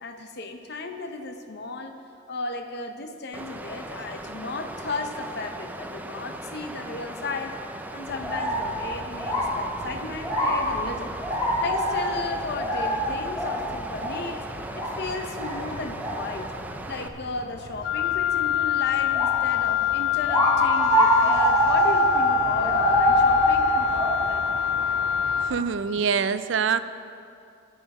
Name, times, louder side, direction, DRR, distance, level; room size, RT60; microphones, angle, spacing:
voice 1, 0.0-1.9 2.3-7.6 7.9-11.1 11.6-14.4 14.7-16.5 16.9-24.8, left 3 dB, 55° left, 6 dB, 0.7 m, -35 dB
Water, 3.3-17.1, right 1 dB, 10° right, 0.4 m, -38 dB
sound 1, 8.0-25.4, equal, 20° left, 3.0 m, -26 dB
Wind instrument woodwind instrument, 17.8-25.6, left 11 dB, 75° left, 0.4 m, -26 dB
voice 2, 25.4-26.8, right 6 dB, 70° right, 13 dB, 0.4 m, -24 dB
10.5 x 9.9 x 5.4 m, 2.4 s
head